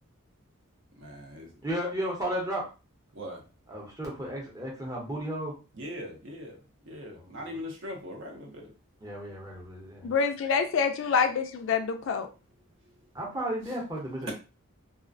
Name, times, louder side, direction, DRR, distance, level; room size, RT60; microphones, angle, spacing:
voice 1, 1.0-1.5 3.1-3.4 5.8-6.6 6.8-8.7, left 1 dB, 55° right, 2 dB, 0.6 m, -40 dB
voice 2, 1.6-2.6 3.7-5.5 7.1-7.6 9.0-10.1 13.1-14.3, right 1 dB, 15° right, -3 dB, 0.7 m, -34 dB
voice 3, 10.0-12.3, left 5 dB, 60° left, 7 dB, 0.3 m, -26 dB
2.3 x 2.1 x 2.5 m, 0.31 s
head